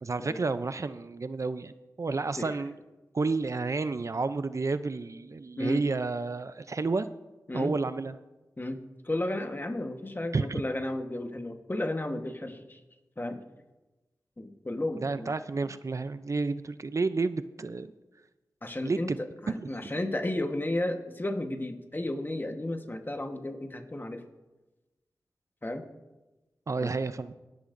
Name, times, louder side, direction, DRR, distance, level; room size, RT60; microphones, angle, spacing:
voice 1, 0.0-1.7 2.0-2.7 3.1-7.1 7.5-8.2 10.3-10.6 15.0-17.9 18.8-19.9 26.7-27.3, right 3 dB, 50° right, 13 dB, 0.5 m, -31 dB
voice 2, 8.6-12.8 13.2-13.4 14.4-15.3 18.6-24.2 25.6-25.9 26.8-26.9, left 1 dB, 30° left, 6 dB, 1.2 m, -33 dB
18.0 x 11.5 x 2.6 m, 1.1 s
cardioid pair, 50°, 7 cm